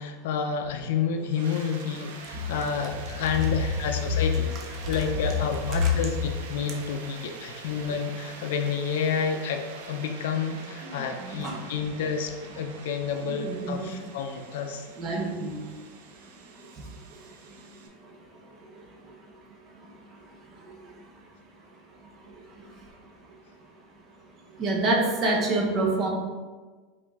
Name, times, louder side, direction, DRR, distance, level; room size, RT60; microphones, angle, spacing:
voice 1, 0.0-4.5 4.8-9.6 9.9-14.9, left 6 dB, 65° left, 5 dB, 0.4 m, -29 dB
sound 1, 1.2-17.9, right 4 dB, 85° right, 0.7 m, -46 dB
voice 2, 10.8-11.6 13.2-13.9 15.0-15.5 24.6-26.1, right 1 dB, 25° right, 0 dB, 0.6 m, -26 dB
4.9 x 2.6 x 3.5 m, 1.4 s
supercardioid pair, 175°, 0 cm